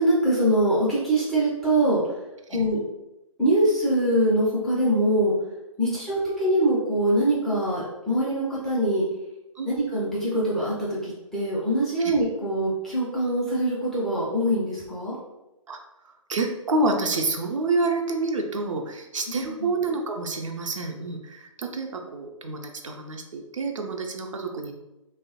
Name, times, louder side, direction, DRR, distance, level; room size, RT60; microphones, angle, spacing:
voice 1, 0.0-2.2 2.5-2.8 3.4-5.3 5.8-9.0 9.7-15.2 19.3-19.7, right 1 dB, ahead, -9 dB, 0.4 m, -23 dB
voice 2, 16.3-24.8, right 3 dB, 65° right, 3 dB, 0.5 m, -28 dB
3.0 x 2.0 x 2.8 m, 0.98 s
figure-of-eight pair, 130°, 17 cm